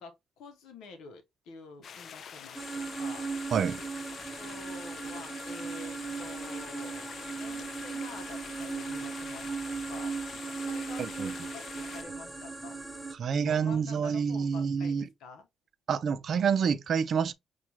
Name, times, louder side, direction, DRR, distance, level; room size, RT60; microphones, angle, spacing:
voice 1, 0.0-3.3 4.4-7.1 7.4-10.2 10.4-12.8 13.2-15.5, left 4 dB, 85° left, 0.8 m, -48 dB
sound 1, 1.8-12.0, left 7 dB, 60° left, 0.4 m, -46 dB
sound 2, 2.6-13.2, right 4 dB, 5° right, 0.9 m, -37 dB
voice 2, 3.5-3.8 11.0-11.3 13.1-15.1 15.9-17.3, right 6 dB, 55° right, 0.5 m, -28 dB
6.0 x 2.4 x 2.7 m
cardioid pair, 90°, 0 cm